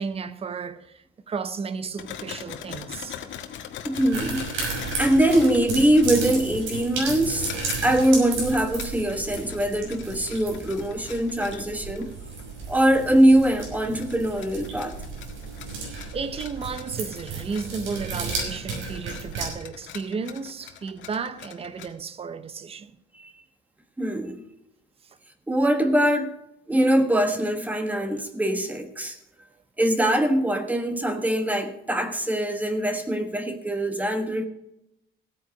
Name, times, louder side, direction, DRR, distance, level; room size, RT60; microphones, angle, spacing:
voice 1, 0.0-3.2 16.1-22.9, right 5 dB, 30° right, 0.8 m, -33 dB
sound 1, 2.0-7.0 7.3-8.0 8.2-12.7 13.4-21.9, left 10 dB, 75° left, 1.6 m, -42 dB
voice 2, 3.8-4.5 4.7-7.5 7.8-12.1 12.7-14.9 24.0-24.4 25.5-26.4 26.7-29.2 29.8-34.5, right 1 dB, 10° right, 1.3 m, -22 dB
sound 2, 3.9-19.5, right 3 dB, 75° right, 5.9 m, -33 dB
16.0 x 9.1 x 5.1 m
cardioid pair, 175°, 20 cm